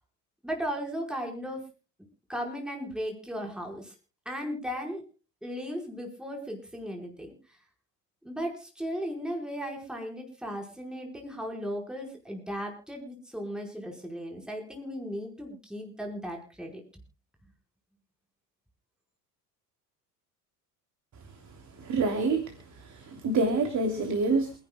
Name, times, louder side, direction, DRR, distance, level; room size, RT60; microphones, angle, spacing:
voice 1, 0.4-1.7 2.3-3.9 4.2-5.0 5.4-7.3 8.2-16.8, equal, ahead, 1 dB, 5.1 m, -36 dB
voice 2, 21.8-24.5, right 3 dB, 35° right, 5 dB, 3.3 m, -27 dB
27.5 x 11.0 x 2.4 m, 0.32 s
hypercardioid pair, 70°, 49 cm